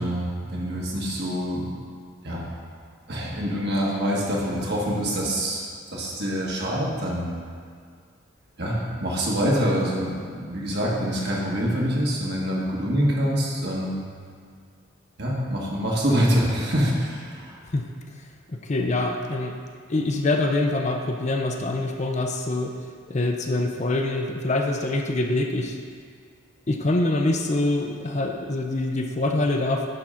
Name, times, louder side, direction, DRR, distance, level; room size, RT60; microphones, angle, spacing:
voice 1, 0.0-1.7 2.2-2.4 3.1-5.6 5.9-7.3 8.6-14.0 15.2-17.5, equal, 55° right, -4 dB, 1.7 m, -25 dB
voice 2, 18.5-19.6 19.9-22.7 23.1-25.8 26.7-29.9, left 2 dB, 35° left, 3 dB, 0.6 m, -25 dB
10.5 x 3.9 x 5.7 m, 2.1 s
head